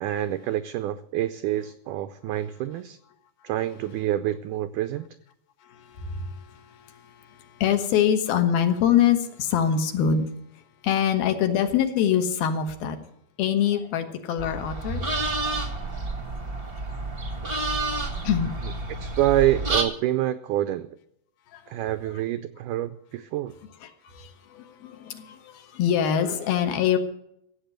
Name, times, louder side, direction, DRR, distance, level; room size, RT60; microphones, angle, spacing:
voice 1, 0.0-3.0 3.4-5.1 19.0-20.9 21.7-23.5, right 13 dB, 90° right, 11 dB, 1.8 m, -27 dB
voice 2, 5.7-10.3 10.8-13.0 13.4-15.0 18.2-18.5 21.5-21.8 23.8-27.0, left 8 dB, 75° left, 7 dB, 3.1 m, -24 dB
sound 1, 14.4-19.8, right 3 dB, 55° right, 0.6 m, -29 dB
15.5 x 8.1 x 7.8 m, 0.75 s
omnidirectional pair, 4.4 m